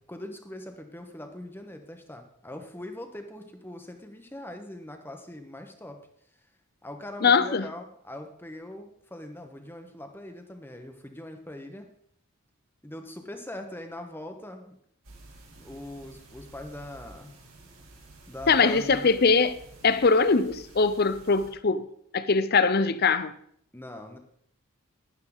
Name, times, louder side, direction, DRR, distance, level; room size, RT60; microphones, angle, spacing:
voice 1, 0.1-6.0 6.8-11.9 12.8-14.7 15.6-17.4 18.3-19.1 23.7-24.2, left 1 dB, 10° left, 1.1 m, -41 dB
voice 2, 7.2-7.7 18.5-19.5 19.8-23.3, left 4 dB, 45° left, 0.6 m, -22 dB
sound 1, 15.0-21.5, right 2 dB, 75° right, 3.2 m, -51 dB
12.0 x 10.5 x 4.0 m
head